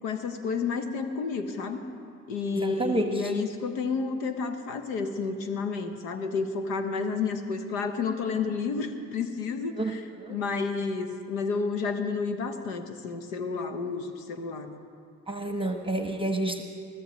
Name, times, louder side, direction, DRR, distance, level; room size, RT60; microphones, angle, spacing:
voice 1, 0.0-1.8 2.3-14.8, left 4 dB, 90° left, 8 dB, 0.9 m, -31 dB
voice 2, 2.5-3.1 9.8-10.4 15.3-16.6, right 1 dB, 15° right, 5 dB, 1.0 m, -29 dB
22.0 x 14.5 x 3.1 m, 2.4 s
hypercardioid pair, 50°, 39 cm